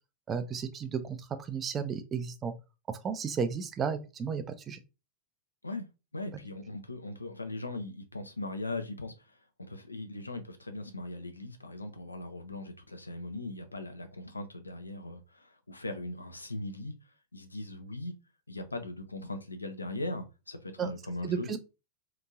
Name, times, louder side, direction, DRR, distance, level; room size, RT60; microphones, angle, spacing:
voice 1, 0.3-1.2 1.5-2.5 3.0-4.8 20.8-20.9 21.2-21.6, right 6 dB, 25° right, 0.4 m, -33 dB
voice 2, 6.1-17.0 17.3-18.1 18.5-21.6, left 2 dB, 80° left, 0.5 m, -39 dB
2.9 x 2.6 x 2.3 m
figure-of-eight pair, 90°, 0 cm